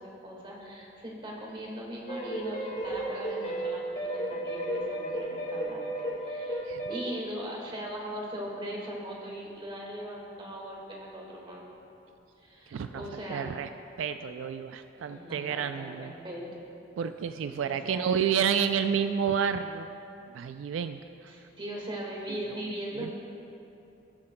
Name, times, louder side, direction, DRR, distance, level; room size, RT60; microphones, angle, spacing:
voice 1, 0.0-5.9 6.2-11.7 12.4-13.5 15.1-16.6 17.6-18.4 21.3-23.1, equal, 25° right, -2 dB, 1.7 m, -40 dB
sound 1, 2.1-7.1, right 1 dB, 45° left, 2.0 m, -33 dB
voice 2, 12.7-13.7 14.0-16.1 17.0-19.9 20.3-21.3 22.3-22.6 22.9-23.1, right 7 dB, 85° right, 9 dB, 0.3 m, -30 dB
19.5 x 7.6 x 2.2 m, 2.8 s
head